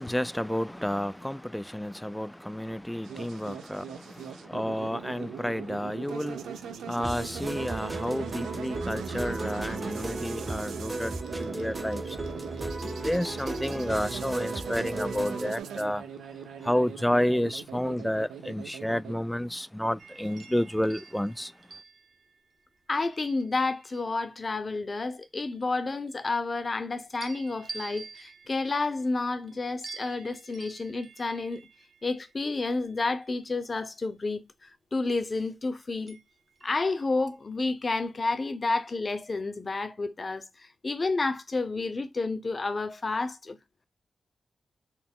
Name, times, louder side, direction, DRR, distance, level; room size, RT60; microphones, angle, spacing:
voice 1, 0.0-6.4 6.8-12.0 13.0-16.0 16.6-21.5, left 1 dB, 5° left, 0.3 m, -30 dB
sound 1, 3.0-19.1, right 7 dB, 90° right, 0.5 m, -40 dB
sound 2, 6.9-15.6, right 2 dB, 20° right, 0.7 m, -36 dB
sound 3, 20.0-24.4 24.9-26.8 27.2-34.2 36.1-37.5 37.9-38.2, right 4 dB, 55° right, 0.8 m, -49 dB
voice 2, 22.9-31.6 32.0-36.2 36.6-43.6, left 3 dB, 45° left, 0.8 m, -30 dB
4.0 x 2.1 x 3.7 m
supercardioid pair, 45°, 0 cm